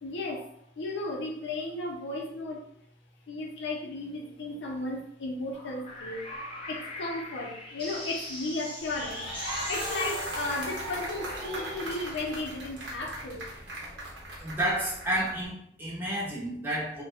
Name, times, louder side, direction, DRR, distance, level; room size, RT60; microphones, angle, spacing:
voice 1, 0.0-2.7 3.3-6.3 6.7-9.3 9.7-13.5, left 2 dB, 70° left, 1 dB, 0.5 m, -35 dB
sound 1, 5.5-12.0, left 1 dB, 30° left, 0.8 m, -41 dB
sound 2, 8.8-15.5, right 1 dB, 75° right, 0.8 m, -38 dB
voice 2, 14.4-17.0, right 1 dB, 10° right, -6 dB, 0.8 m, -31 dB
2.6 x 2.1 x 2.4 m, 0.69 s
head